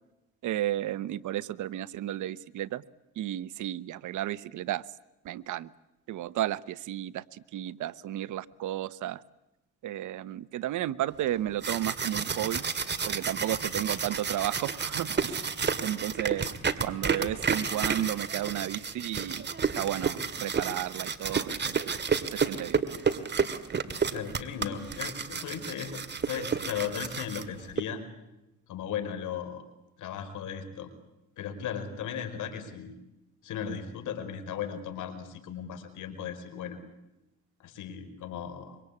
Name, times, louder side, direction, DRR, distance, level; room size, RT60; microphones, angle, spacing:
voice 1, 0.4-2.8 3.2-4.9 5.2-5.7 6.1-9.2 9.8-12.6 13.0-15.5 15.8-16.5 16.8-19.5 19.7-21.8 22.3-22.8, right 13 dB, 80° right, 17 dB, 1.0 m, -33 dB
sound 1, 11.4-27.8, right 5 dB, 35° right, 2.2 m, -31 dB
voice 2, 24.1-28.0 28.7-29.6 30.0-30.9 31.4-33.0 33.4-36.8 37.6-38.8, left 8 dB, 85° left, 8 dB, 4.9 m, -36 dB
26.0 x 24.0 x 8.6 m, 0.93 s
cardioid pair, 90°, 30 cm